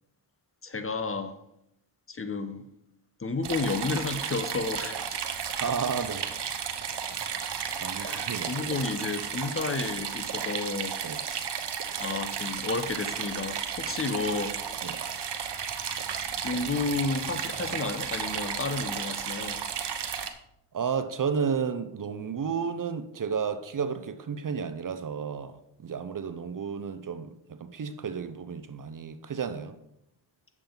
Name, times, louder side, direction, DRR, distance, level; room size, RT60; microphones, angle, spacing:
voice 1, 0.6-1.4 2.1-2.7 3.2-5.0 8.0-11.0 11.2-11.5 12.0-15.0 16.4-19.6, left 3 dB, 25° left, 0.9 m, -32 dB
sound 1, 3.4-20.3, right 7 dB, 60° right, 1.1 m, -33 dB
voice 2, 5.6-6.4 6.7-6.8 7.8-8.8 11.0-11.2 14.8-15.0 20.7-29.8, right 6 dB, 45° right, 0.7 m, -32 dB
8.6 x 7.3 x 3.9 m
cardioid pair, 60°, 47 cm